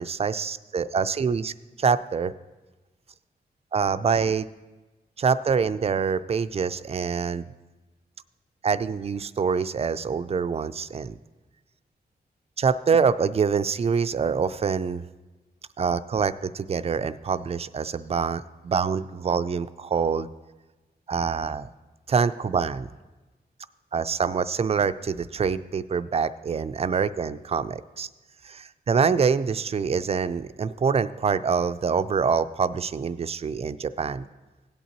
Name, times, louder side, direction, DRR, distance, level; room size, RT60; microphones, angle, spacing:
voice 1, 0.0-2.3 3.7-4.5 5.2-7.5 8.6-11.2 12.6-15.0 15.8-20.3 21.1-21.7 22.1-22.9 23.9-28.1 28.4-34.3, right 6 dB, 40° right, 13 dB, 0.4 m, -25 dB
17.0 x 8.3 x 2.9 m, 1.2 s
wide cardioid pair, 100°, 17 cm